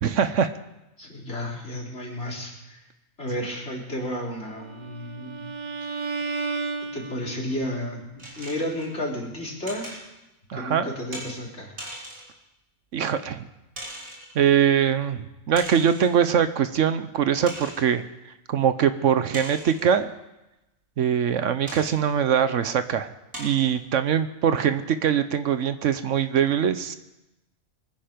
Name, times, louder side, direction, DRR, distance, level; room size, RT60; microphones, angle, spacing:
voice 1, 0.0-0.5 10.5-10.9 12.9-13.5 14.3-15.2 15.5-18.0 18.5-20.1 21.0-23.1 23.4-27.0, right 8 dB, 70° right, 11 dB, 1.1 m, -22 dB
voice 2, 1.0-2.9 3.2-5.4 6.9-8.0 8.4-10.0 10.5-11.7, left 1 dB, 55° left, -3 dB, 3.8 m, -32 dB
Bowed string instrument, 4.5-7.6, right 4 dB, 35° right, 1.0 m, -33 dB
sound 1, 8.2-8.9 9.7-10.0 11.1-11.3 11.8-12.3 13.1-13.2 13.7-14.3 15.5-16.2 16.7-16.8 17.5-17.9 19.3-19.9 21.7-22.0 22.6-22.7 23.3-23.7, right 1 dB, 85° right, 4.3 m, -39 dB
23.5 x 10.5 x 5.1 m, 0.95 s
omnidirectional pair, 1.4 m